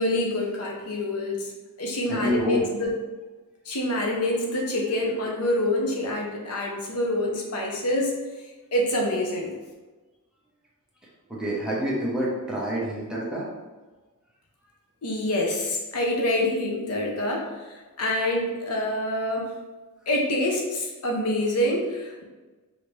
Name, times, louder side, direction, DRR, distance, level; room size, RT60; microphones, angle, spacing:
voice 1, 0.0-1.5 1.8-2.9 3.7-8.1 8.7-9.5 15.0-19.5 20.1-22.2, left 1 dB, 85° left, 0 dB, 0.9 m, -26 dB
voice 2, 2.1-2.7 11.3-13.5, equal, 5° right, -6 dB, 0.9 m, -27 dB
4.9 x 2.8 x 3.2 m, 1.2 s
head